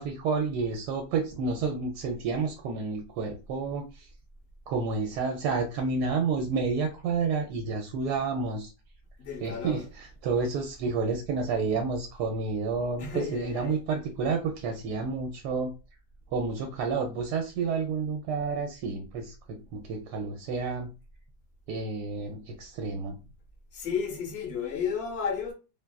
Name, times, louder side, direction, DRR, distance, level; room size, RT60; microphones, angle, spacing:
voice 1, 0.0-4.1 4.7-8.7 9.4-15.8 16.3-20.9 21.7-23.2, right 4 dB, 75° right, 1.1 m, -30 dB
voice 2, 9.2-9.8 13.0-13.8 23.7-25.5, left 6 dB, 50° left, 0.8 m, -32 dB
2.8 x 2.3 x 2.2 m
omnidirectional pair, 1.8 m